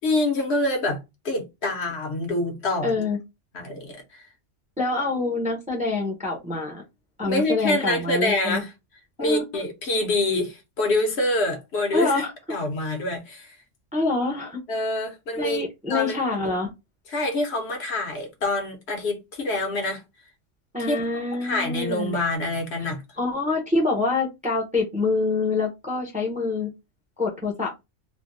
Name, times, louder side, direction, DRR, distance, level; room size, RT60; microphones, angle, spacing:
voice 1, 0.0-1.0 1.2-2.9 3.5-4.2 7.2-8.7 9.2-13.6 14.7-16.2 17.1-20.0 20.9-23.0, left 2 dB, 65° left, 1.1 m, -26 dB
voice 2, 2.8-3.2 4.8-6.8 7.2-8.6 9.2-9.4 11.9-12.3 13.9-14.6 15.4-16.7 20.7-22.2 23.2-26.7 27.2-27.8, left 3 dB, 10° right, 0.6 m, -26 dB
3.3 x 2.2 x 2.6 m
omnidirectional pair, 1.2 m